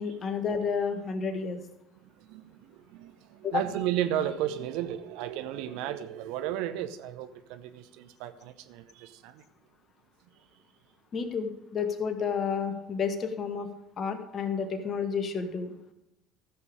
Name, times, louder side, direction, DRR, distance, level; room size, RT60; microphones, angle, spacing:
voice 1, 0.0-1.6 3.4-3.7 11.1-13.7 14.0-15.7, left 6 dB, 35° left, 1.5 m, -31 dB
voice 2, 2.0-9.4, right 11 dB, 60° right, 0.8 m, -34 dB
15.0 x 7.0 x 5.1 m
figure-of-eight pair, 60°, 0 cm